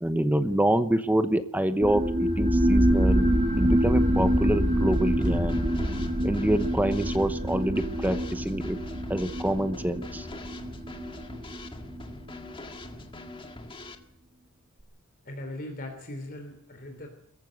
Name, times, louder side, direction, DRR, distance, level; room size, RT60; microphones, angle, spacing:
voice 1, 0.0-3.3 3.6-5.7 6.2-8.8 9.1-10.3, right 1 dB, 10° right, 10 dB, 0.9 m, -26 dB
sound 1, 1.8-12.9, equal, 35° right, 2.5 m, -26 dB
Drum kit / Snare drum, 4.9-14.0, left 2 dB, 25° left, 1.9 m, -44 dB
sound 2, 5.2-8.1 8.4-8.5, equal, 80° left, 2.9 m, -45 dB
voice 2, 15.3-17.1, left 1 dB, 45° left, 3 dB, 3.5 m, -39 dB
23.0 x 15.0 x 7.9 m, 0.69 s
head